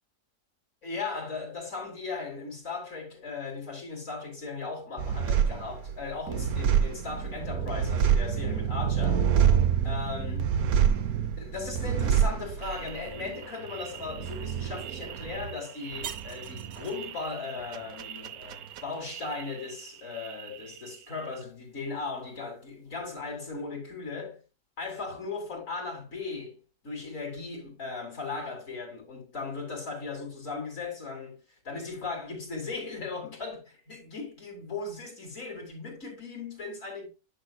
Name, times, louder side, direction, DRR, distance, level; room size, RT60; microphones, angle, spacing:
voice 1, 0.8-9.3 9.8-10.5 11.4-24.4 24.8-31.4 31.6-37.1, left 4 dB, 55° left, 3.6 m, -37 dB
sound 1, 5.0-19.9 20.1-20.9, right 8 dB, 70° right, 1.3 m, -28 dB
10.5 x 6.5 x 2.3 m
omnidirectional pair, 1.6 m